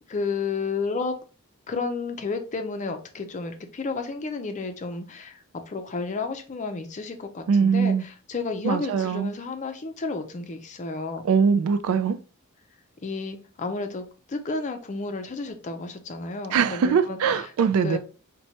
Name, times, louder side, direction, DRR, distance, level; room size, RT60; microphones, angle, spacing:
voice 1, 0.1-1.2 1.7-11.2 13.0-17.4 17.8-18.0, left 4 dB, 35° left, 0.5 m, -32 dB
voice 2, 7.5-8.0 8.6-9.3 11.2-12.2 16.5-18.0, right 6 dB, 70° right, 0.3 m, -22 dB
4.3 x 2.2 x 2.7 m
head